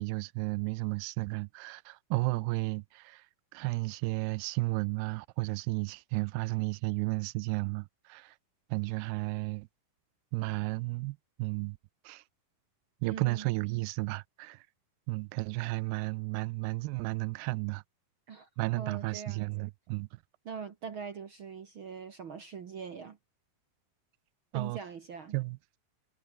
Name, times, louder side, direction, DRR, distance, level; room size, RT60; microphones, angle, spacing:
voice 1, 0.0-3.2 3.5-8.4 8.7-9.7 10.3-11.8 12.1-12.2 13.0-14.6 15.1-17.8 18.6-20.1 24.5-24.8 25.3-25.6, right 23 dB, 85° right, 2.6 m, -33 dB
voice 2, 13.0-13.5 18.3-19.7 20.4-23.2 24.5-25.4, right 6 dB, 60° right, 1.3 m, -42 dB
omnidirectional pair, 4.5 m